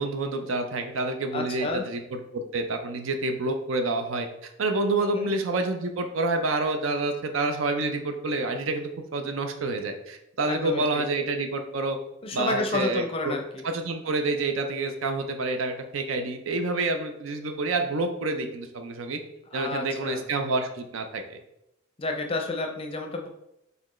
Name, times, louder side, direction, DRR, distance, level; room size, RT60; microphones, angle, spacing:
voice 1, 0.0-12.0 12.3-13.3 13.6-19.2 19.5-21.4, right 2 dB, 75° right, 6 dB, 0.5 m, -28 dB
voice 2, 1.3-1.8 5.0-5.3 10.4-11.0 12.2-13.6 19.5-20.2 22.0-23.3, left 2 dB, 30° left, 3 dB, 0.5 m, -30 dB
4.3 x 3.3 x 3.1 m, 0.85 s
head